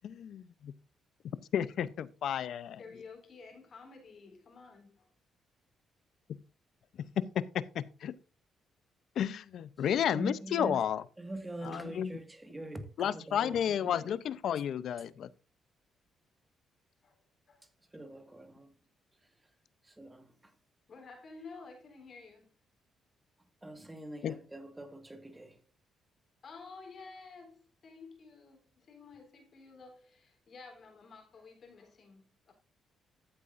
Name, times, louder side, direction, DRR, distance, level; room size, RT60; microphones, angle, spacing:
voice 1, 0.0-0.7 1.5-2.8 6.3-6.4 7.0-8.1 9.2-11.0 11.6-12.2 13.0-15.3 24.2-24.3, left 9 dB, 70° left, 0.6 m, -32 dB
voice 2, 2.8-5.1 17.0-17.2 17.5-17.7 20.9-22.5 26.4-32.5, left 4 dB, 50° left, 3.5 m, -52 dB
voice 3, 10.1-10.8 11.2-14.1 17.9-18.7 19.8-20.5 23.6-25.6, right 2 dB, 15° right, 1.7 m, -44 dB
13.5 x 8.3 x 2.6 m
cardioid pair, 90°, 0 cm